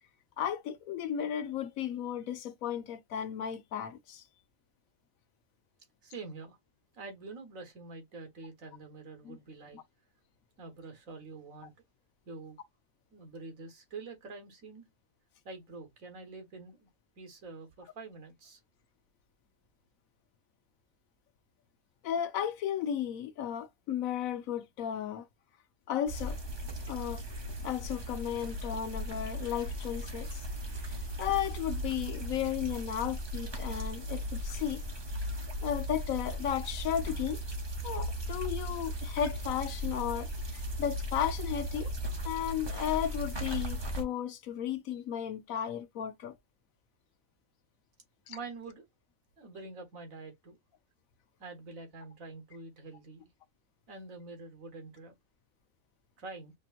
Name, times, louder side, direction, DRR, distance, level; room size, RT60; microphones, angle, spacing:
voice 1, 0.4-4.2 9.2-9.4 9.7-9.8 22.0-25.3 25.9-26.4 26.9-27.2 27.6-30.4 31.2-34.8 35.6-37.4 37.8-41.9 42.2-46.3 48.3-48.4, left 10 dB, 80° left, 1.2 m, -34 dB
voice 2, 6.0-6.6 6.9-9.8 10.6-11.7 12.3-12.6 13.1-14.9 15.5-16.9 17.2-18.6 48.3-48.9 49.4-50.6 51.4-53.3 53.9-55.1 56.2-56.5, right 3 dB, 75° right, 1.7 m, -46 dB
sound 1, 26.1-44.0, equal, 20° right, 0.8 m, -37 dB
5.2 x 2.9 x 2.4 m
omnidirectional pair, 1.4 m